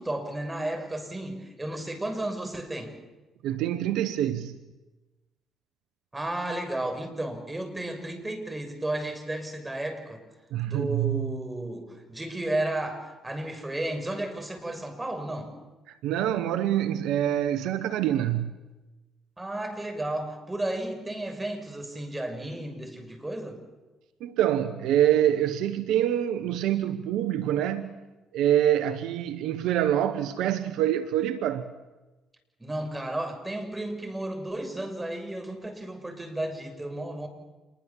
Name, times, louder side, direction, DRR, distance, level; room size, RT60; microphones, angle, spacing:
voice 1, 0.0-3.0 6.1-10.2 10.6-15.5 19.4-23.6 32.6-37.3, right 1 dB, 15° right, 6.7 m, -33 dB
voice 2, 3.4-4.6 10.5-11.3 16.0-18.5 24.2-27.9 28.3-31.7, right 11 dB, 75° right, 1.1 m, -25 dB
27.0 x 22.0 x 7.3 m
hypercardioid pair, 55°, 0 cm